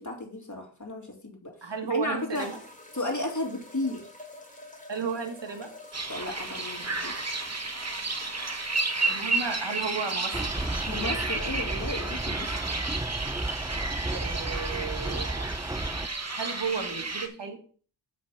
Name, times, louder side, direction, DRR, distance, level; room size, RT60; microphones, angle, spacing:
voice 1, 0.0-1.5 1.8-2.5 2.9-4.0 6.1-7.1 10.9-12.5, left 1 dB, 40° left, 1 dB, 2.8 m, -33 dB
sound 1, 1.5-1.6 2.3-11.1, left 1 dB, 15° left, 2.8 m, -48 dB
voice 2, 1.6-2.6 4.9-5.7 9.0-10.5 14.1-15.5 16.4-17.6, right 5 dB, 75° right, 4 dB, 1.7 m, -33 dB
sound 2, 5.9-17.3, right 3 dB, 35° right, 1.3 m, -32 dB
sound 3, 10.3-16.1, right 2 dB, 10° right, 0.5 m, -33 dB
7.5 x 5.9 x 5.7 m, 0.43 s
wide cardioid pair, 45°, 43 cm